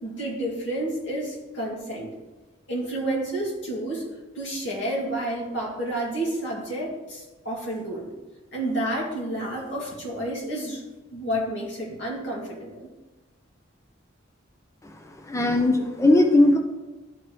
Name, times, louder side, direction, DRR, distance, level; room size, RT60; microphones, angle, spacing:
voice 1, 0.0-2.1 2.7-4.0 4.3-8.1 8.5-10.8 11.1-12.9, right 1 dB, 65° left, -3 dB, 2.3 m, -30 dB
voice 2, 15.2-16.6, left 1 dB, 15° left, 3 dB, 0.6 m, -19 dB
12.0 x 4.5 x 3.1 m, 1.1 s
head